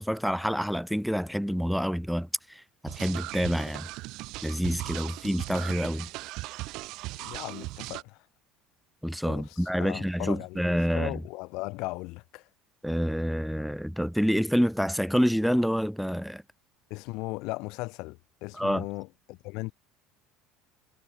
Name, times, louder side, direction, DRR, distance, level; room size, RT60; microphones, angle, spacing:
voice 1, 0.0-3.9 4.4-6.1 9.0-11.2 12.8-16.4 18.5-18.8, equal, ahead, 2.6 m, -27 dB
sound 1, 2.9-8.0, right 20 dB, 65° right, 3.7 m, -38 dB
voice 2, 7.2-8.2 9.3-12.4 16.9-19.7, left 24 dB, 70° left, 4.9 m, -37 dB
supercardioid pair, 95°, 0 cm